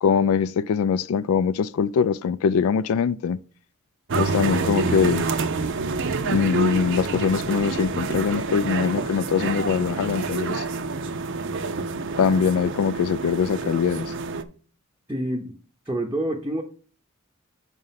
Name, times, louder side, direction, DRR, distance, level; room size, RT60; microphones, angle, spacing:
voice 1, 0.0-3.4 4.2-5.3 6.2-10.6 12.2-14.1, left 6 dB, 80° left, 0.3 m, -22 dB
sound 1, 4.1-14.4, right 3 dB, 60° right, 0.6 m, -27 dB
voice 2, 15.1-15.6 15.9-16.6, right 1 dB, 10° right, 0.6 m, -27 dB
5.3 x 4.9 x 5.7 m
head